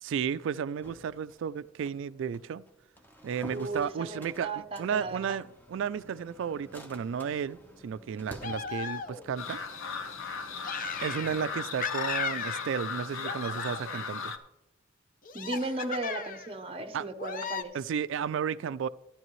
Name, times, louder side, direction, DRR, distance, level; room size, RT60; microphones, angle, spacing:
voice 1, 0.0-2.6 3.2-7.6 7.8-9.6 11.0-14.3 16.9-17.0 17.7-18.9, right 7 dB, 65° right, 0.3 m, -33 dB
sound 1, 0.8-11.4, equal, 10° left, 1.0 m, -51 dB
voice 2, 3.5-5.4 15.3-17.8, right 2 dB, 30° right, 0.7 m, -36 dB
sound 2, 8.4-9.4 10.6-11.5 11.8-12.9 13.2-14.0 15.3-16.5 17.2-17.6, left 6 dB, 45° left, 0.7 m, -36 dB
sound 3, 9.4-14.4, left 5 dB, 90° left, 0.9 m, -37 dB
13.5 x 10.0 x 3.1 m
head